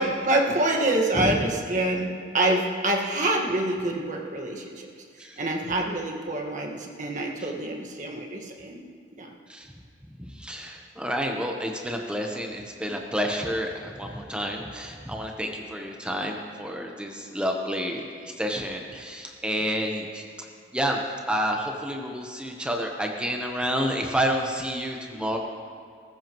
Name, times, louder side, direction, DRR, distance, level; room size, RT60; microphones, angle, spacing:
voice 1, 0.0-4.9 5.4-8.8 9.2-9.3, right 1 dB, 45° right, 1 dB, 1.6 m, -26 dB
voice 2, 1.1-1.4 5.2-5.4 9.5-9.7 10.2-20.5 20.7-25.4, equal, 5° right, 1 dB, 1.0 m, -29 dB
20.0 x 14.5 x 3.1 m, 2.2 s
head